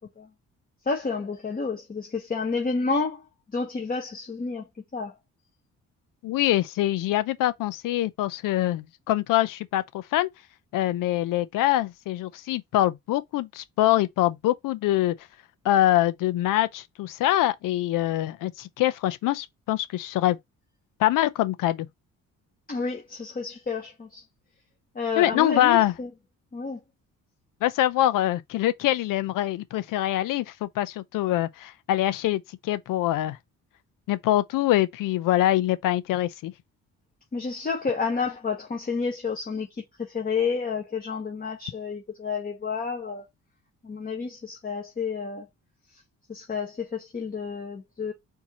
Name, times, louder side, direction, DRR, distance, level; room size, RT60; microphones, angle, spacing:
voice 1, 0.9-3.2 3.5-4.7 4.9-5.1 22.7-24.2 24.9-26.1 26.5-26.8 37.3-43.3 43.8-45.5 46.3-48.1, left 4 dB, 30° left, 1.1 m, -30 dB
voice 2, 6.2-10.3 10.7-15.1 15.6-20.4 21.0-21.9 25.2-25.9 27.6-33.4 34.1-36.5, left 14 dB, 85° left, 0.6 m, -24 dB
4.6 x 2.8 x 4.1 m
cardioid pair, 115°, 32 cm